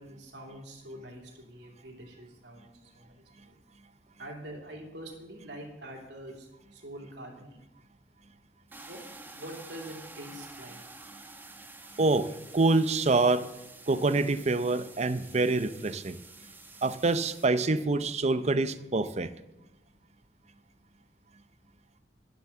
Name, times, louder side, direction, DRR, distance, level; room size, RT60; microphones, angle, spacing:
voice 1, 0.0-3.6 4.2-7.6 8.8-9.0 9.3-10.8, right 1 dB, 80° right, 0 dB, 3.0 m, -45 dB
sound 1, 8.7-17.5, right 3 dB, 10° right, 0.9 m, -49 dB
voice 2, 12.5-13.4 13.9-16.2 16.8-19.3, right 3 dB, 40° right, 13 dB, 0.6 m, -26 dB
12.0 x 7.2 x 7.3 m, 1.0 s
head